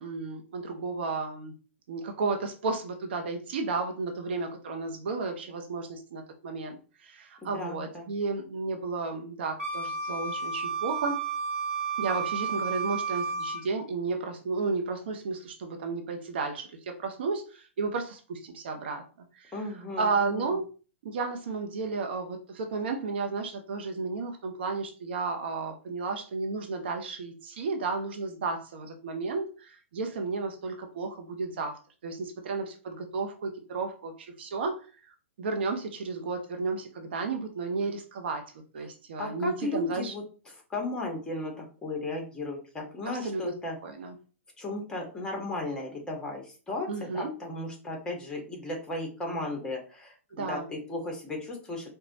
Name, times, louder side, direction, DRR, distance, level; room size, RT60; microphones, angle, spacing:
voice 1, 0.0-1.5 1.9-11.2 12.0-19.0 19.4-19.5 20.0-20.6 21.0-34.9 35.4-40.1 43.1-43.5 43.8-44.1 46.9-47.3 50.3-50.7, right 4 dB, 55° right, 4 dB, 0.7 m, -33 dB
voice 2, 7.4-8.1 19.5-20.6 39.2-43.8 44.6-51.9, left 2 dB, 10° left, 1 dB, 1.1 m, -35 dB
Wind instrument woodwind instrument, 9.6-13.7, right 5 dB, 80° right, 1.0 m, -32 dB
4.8 x 2.2 x 2.7 m, 0.36 s
figure-of-eight pair, 105°, 7 cm